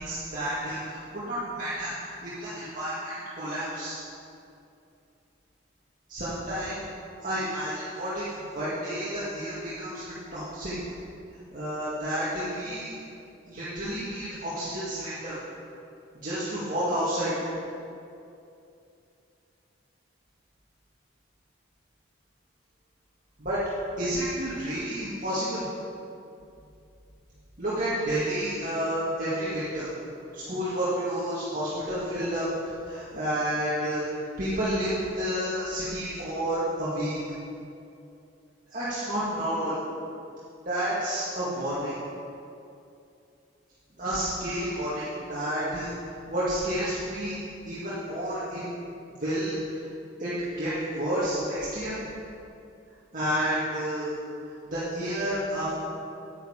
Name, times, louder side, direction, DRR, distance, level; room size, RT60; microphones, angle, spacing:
voice 1, 0.0-1.9 2.2-4.0 6.1-6.8 7.2-8.3 8.5-10.7 11.5-12.9 13.5-15.4 16.2-17.4 23.4-23.6 24.0-25.7 27.6-29.9 30.3-32.5 32.8-34.0 34.4-37.2 38.7-39.8 40.7-42.0 44.0-45.9 46.3-47.4 47.6-48.7 49.2-49.6 50.2-50.3 50.6-52.0 53.1-54.2 54.7-55.7, equal, 40° right, -11 dB, 2.1 m, -30 dB
9.9 x 9.4 x 5.0 m, 2.7 s
head